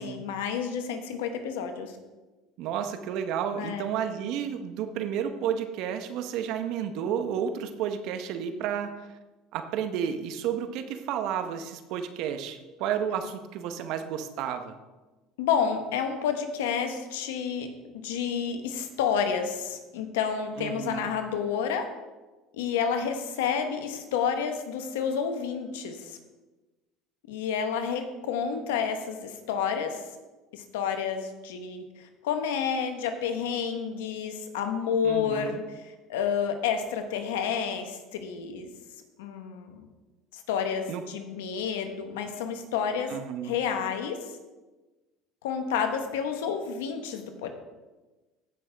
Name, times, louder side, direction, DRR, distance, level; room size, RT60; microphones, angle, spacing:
voice 1, 0.0-2.0 3.6-3.9 15.4-17.7 18.0-21.8 22.5-26.2 27.3-30.0 30.5-38.7 39.2-39.9 40.3-43.1 43.4-44.3 45.4-47.5, left 7 dB, 85° left, 7 dB, 1.2 m, -30 dB
voice 2, 2.6-8.9 9.5-14.8 20.6-21.1 35.0-35.6 40.9-41.0 43.1-43.6, right 8 dB, 65° right, 8 dB, 0.9 m, -31 dB
15.0 x 6.1 x 3.5 m, 1.2 s
supercardioid pair, 85°, 0 cm